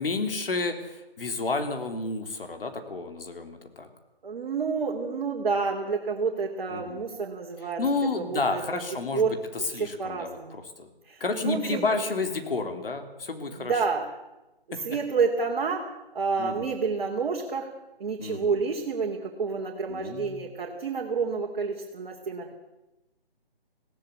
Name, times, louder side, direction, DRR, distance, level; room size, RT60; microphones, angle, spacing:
voice 1, 0.0-3.9 6.7-7.0 7.8-10.9 11.2-13.7 14.7-14.8 16.4-16.7 18.2-18.6 19.9-20.4, left 3 dB, 65° left, 6 dB, 3.4 m, -31 dB
voice 2, 4.2-8.6 9.1-10.6 11.0-12.0 13.5-14.1 14.8-15.9 16.1-17.7 18.0-22.6, right 5 dB, 50° right, 0 dB, 3.0 m, -29 dB
19.5 x 16.5 x 8.4 m, 1.0 s
figure-of-eight pair, 155°, 30 cm